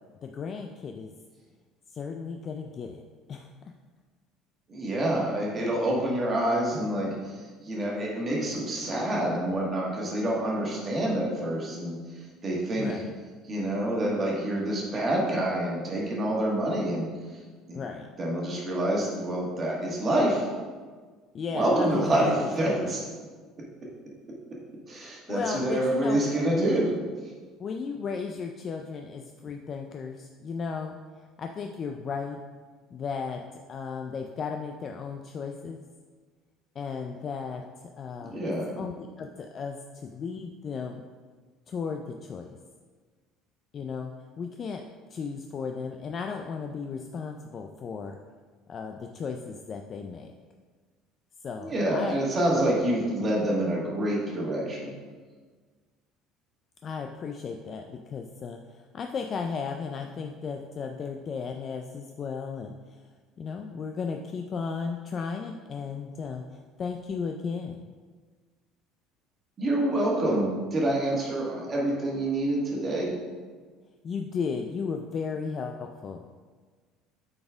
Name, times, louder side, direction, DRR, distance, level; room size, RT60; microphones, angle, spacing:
voice 1, 0.2-1.1 1.9-3.0 3.3-3.5 12.8-13.1 17.7-18.1 21.3-23.0 25.3-26.2 26.7-26.9 27.6-32.4 32.9-35.8 36.8-41.0 41.7-42.5 43.7-44.8 45.1-48.2 48.7-50.3 51.4-52.2 52.5-52.7 56.8-62.8 63.4-66.4 66.8-67.8 74.0-76.3, left 5 dB, 30° left, 3 dB, 0.3 m, -35 dB
voice 2, 4.7-7.4 7.6-12.0 12.4-13.0 13.5-17.1 17.7-17.8 18.2-20.5 21.5-23.0 24.9-26.9 38.3-38.7 51.6-54.9 69.6-73.2, right 1 dB, 25° right, -3 dB, 1.4 m, -27 dB
8.5 x 4.2 x 3.5 m, 1.5 s
cardioid pair, 165°, 0 cm